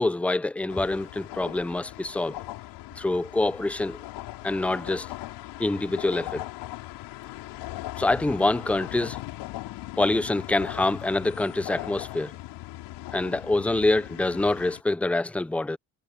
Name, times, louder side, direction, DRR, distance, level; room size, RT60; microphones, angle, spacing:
voice 1, 0.0-2.4 3.0-4.0 4.4-5.1 5.6-6.5 8.0-9.2 10.0-12.3 13.1-15.8, left 2 dB, 5° left, 0.6 m, -25 dB
sound 1, 0.7-14.8, left 17 dB, 80° left, 5.3 m, -39 dB
cardioid pair, 105°, 40 cm